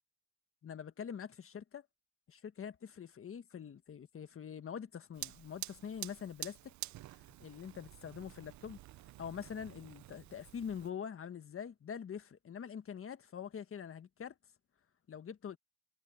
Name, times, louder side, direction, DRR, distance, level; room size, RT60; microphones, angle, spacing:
voice 1, 0.6-1.8 2.3-6.7 7.4-8.8 9.2-14.3 15.1-15.6, left 7 dB, 45° left, 1.5 m, -44 dB
Fire, 5.1-10.9, right 15 dB, 70° right, 0.6 m, -48 dB
cardioid pair, 90°, 30 cm